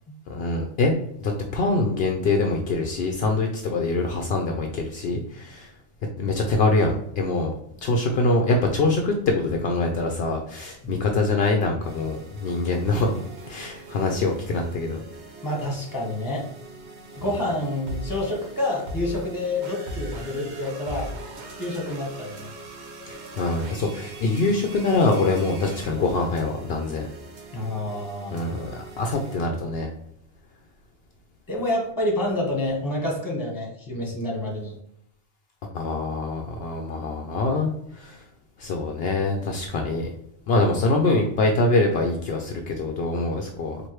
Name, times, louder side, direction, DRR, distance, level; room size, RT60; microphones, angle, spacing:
voice 1, 0.3-5.7 6.2-7.5 7.8-15.0 23.1-27.1 28.3-29.9 35.7-38.2 38.6-40.1 40.5-43.8, left 2 dB, 70° left, 2 dB, 0.8 m, -24 dB
sound 1, 11.8-29.4, right 1 dB, 85° right, 1.1 m, -40 dB
voice 2, 15.4-16.5 17.2-21.1 21.6-22.5 27.5-28.5 31.5-34.7, left 1 dB, 20° left, -1 dB, 1.2 m, -28 dB
4.6 x 2.5 x 3.0 m, 0.74 s
omnidirectional pair, 1.1 m